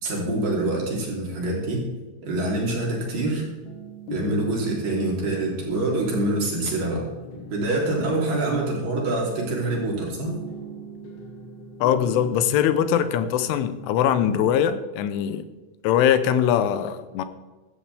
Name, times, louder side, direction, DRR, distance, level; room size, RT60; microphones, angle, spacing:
voice 1, 0.0-1.9 2.2-3.5 4.1-7.1 7.5-10.3, right 2 dB, 50° right, -2 dB, 4.6 m, -25 dB
sound 1, 2.4-14.5, right 1 dB, 65° left, 2.9 m, -41 dB
voice 2, 11.8-15.5 15.8-17.2, left 9 dB, 85° left, 11 dB, 3.4 m, -22 dB
15.5 x 13.0 x 3.5 m, 1.2 s
omnidirectional pair, 5.5 m